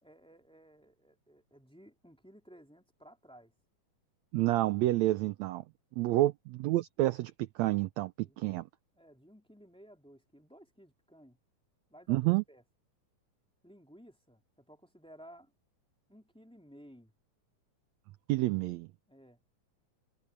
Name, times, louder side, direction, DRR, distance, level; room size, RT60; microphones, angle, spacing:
voice 1, 0.0-3.5 6.0-6.2 8.2-8.4 8.9-11.4 11.9-12.6 13.6-15.5 16.1-17.1 19.1-19.4, equal, ahead, 2.7 m, -57 dB
voice 2, 4.3-5.6 6.0-8.1 8.4-8.7 12.1-12.4 18.3-18.9, right 17 dB, 80° right, 1.6 m, -29 dB
omnidirectional pair, 3.6 m